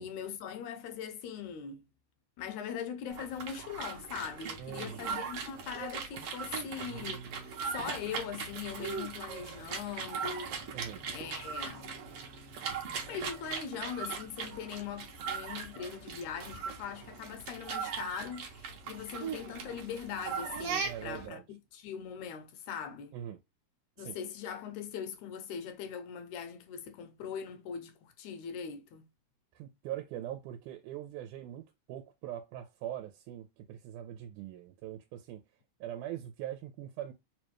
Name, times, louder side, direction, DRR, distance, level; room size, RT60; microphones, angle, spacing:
voice 1, 0.0-1.9 2.4-10.6 11.1-12.0 13.1-23.2 24.0-29.1, left 7 dB, 75° left, 1.9 m, -41 dB
sound 1, 3.1-21.3, right 6 dB, 70° right, 1.5 m, -39 dB
voice 2, 4.6-5.0 10.7-11.0 20.8-21.4 23.1-23.4 24.0-24.2 29.6-35.4 35.8-37.1, right 11 dB, 85° right, 2.0 m, -42 dB
4.8 x 2.2 x 3.0 m
omnidirectional pair, 3.5 m